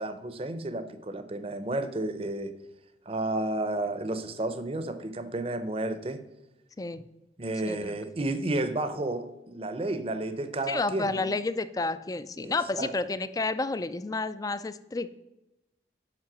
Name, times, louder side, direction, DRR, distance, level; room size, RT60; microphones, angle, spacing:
voice 1, 0.0-2.5 3.1-6.2 7.4-11.4 12.4-12.9, right 2 dB, 30° right, 0.6 m, -32 dB
voice 2, 10.7-15.2, left 3 dB, 20° left, 0.3 m, -30 dB
7.5 x 5.5 x 6.0 m
head